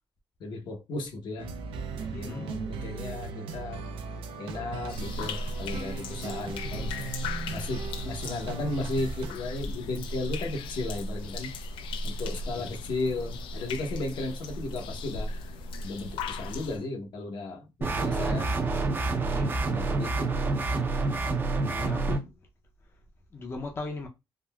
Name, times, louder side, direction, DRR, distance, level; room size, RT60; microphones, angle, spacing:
voice 1, 0.4-1.5 1.9-3.8 4.4-7.1 7.5-11.6 12.0-15.3 15.8-18.5 19.7-20.3, left 2 dB, 65° left, 0.8 m, -35 dB
sound 1, 1.4-9.3, right 5 dB, 85° right, 0.4 m, -38 dB
voice 2, 2.1-2.5 12.5-12.7 19.3-19.6 21.5-22.3 23.3-24.1, left 3 dB, 25° left, 0.5 m, -37 dB
sound 2, 4.9-16.8, left 2 dB, 85° left, 0.4 m, -36 dB
sound 3, 17.8-22.2, right 3 dB, 25° right, 0.4 m, -27 dB
3.7 x 2.0 x 2.2 m
cardioid pair, 130°, 9 cm